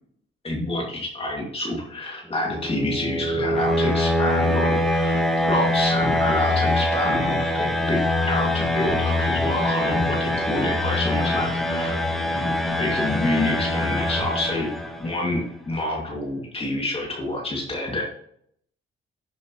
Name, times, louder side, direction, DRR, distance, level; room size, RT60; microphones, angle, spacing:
voice 1, 0.4-5.2 5.5-8.0 8.2-12.0 12.3-14.7 15.0-15.4 15.7-18.0, left 1 dB, 30° left, -2 dB, 2.4 m, -27 dB
sound 1, 2.3-15.2, left 1 dB, ahead, 1.6 m, -24 dB
12.0 x 7.1 x 3.1 m, 0.67 s
cardioid pair, 90°, 20 cm